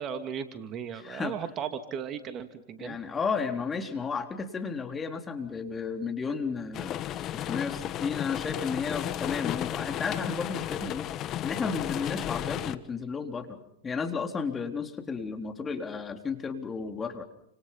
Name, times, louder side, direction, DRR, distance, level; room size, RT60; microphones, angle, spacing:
voice 1, 0.0-3.0, right 7 dB, 35° right, 9 dB, 2.6 m, -36 dB
voice 2, 0.9-1.4 2.8-17.2, left 5 dB, 20° left, 6 dB, 3.7 m, -33 dB
sound 1, 6.7-12.8, left 12 dB, 35° left, 1.5 m, -33 dB
30.0 x 27.0 x 5.7 m, 0.75 s
hypercardioid pair, 105°, 0 cm